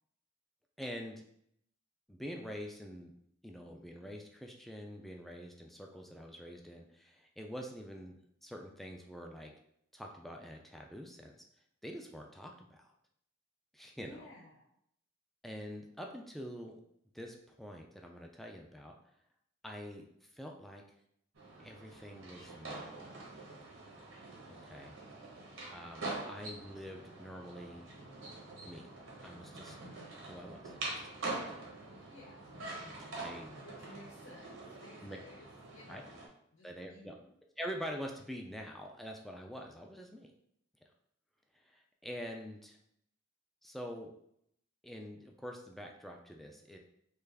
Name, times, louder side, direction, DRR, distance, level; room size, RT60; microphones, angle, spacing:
voice 1, 0.8-1.2 2.1-3.1 3.4-9.5 9.9-11.4 11.8-12.9 13.7-14.3 15.4-16.8 17.1-19.0 19.6-20.8 21.6-23.2 24.5-24.9 25.7-27.9 28.6-28.9 29.2-29.8 30.3-31.1 32.8-33.6 35.0-35.2 35.9-36.0 36.6-37.2 37.6-40.3 41.5-42.8 43.6-44.1 44.8-46.8, equal, ahead, 1 dB, 0.3 m, -46 dB
voice 2, 14.0-14.7 32.1-32.5 33.6-36.2 36.5-37.2, left 1 dB, 90° left, -4 dB, 0.8 m, -55 dB
sound 1, 21.4-36.3, right 2 dB, 80° right, 0.9 m, -45 dB
3.3 x 2.3 x 3.4 m, 0.71 s
head